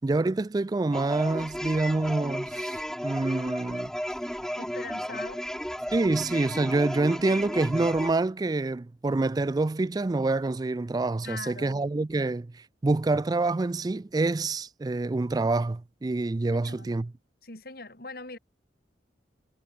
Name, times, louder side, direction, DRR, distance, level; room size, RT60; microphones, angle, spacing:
voice 1, 0.0-3.9 5.9-17.1, right 2 dB, 20° right, 0.3 m, -27 dB
sound 1, 0.9-8.1, equal, 5° left, 2.7 m, -34 dB
voice 2, 4.6-5.5 11.2-11.8 16.5-16.9 17.4-18.4, left 3 dB, 60° left, 4.6 m, -41 dB
head